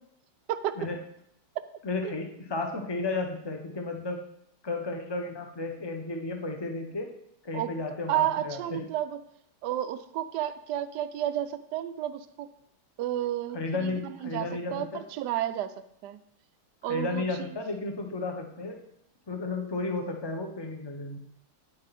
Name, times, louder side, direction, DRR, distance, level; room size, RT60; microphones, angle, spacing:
voice 1, 1.8-4.2 4.6-7.1 7.4-8.8 13.5-15.0 16.9-18.8 19.3-21.2, left 3 dB, 20° left, 3 dB, 0.7 m, -33 dB
voice 2, 8.1-9.2 9.6-12.5 13.0-14.9 15.2-15.7 16.0-16.2 16.8-17.5, right 12 dB, 75° right, 10 dB, 1.0 m, -31 dB
9.5 x 8.9 x 4.2 m, 0.73 s
omnidirectional pair, 2.3 m